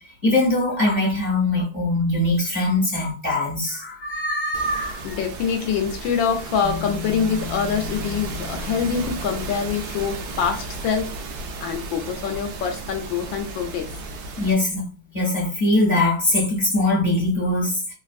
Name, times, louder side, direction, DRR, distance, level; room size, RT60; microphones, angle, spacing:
voice 1, 0.2-5.2 14.4-14.8 15.1-17.9, left 2 dB, 25° right, -6 dB, 1.2 m, -22 dB
sound 1, 4.5-14.5, right 3 dB, 75° right, 0.9 m, -34 dB
voice 2, 5.0-11.1 11.6-13.9, left 6 dB, 75° left, 5 dB, 1.3 m, -25 dB
sound 2, 6.6-16.1, left 16 dB, 55° left, 0.9 m, -41 dB
3.3 x 2.5 x 2.4 m, 0.35 s
omnidirectional pair, 2.2 m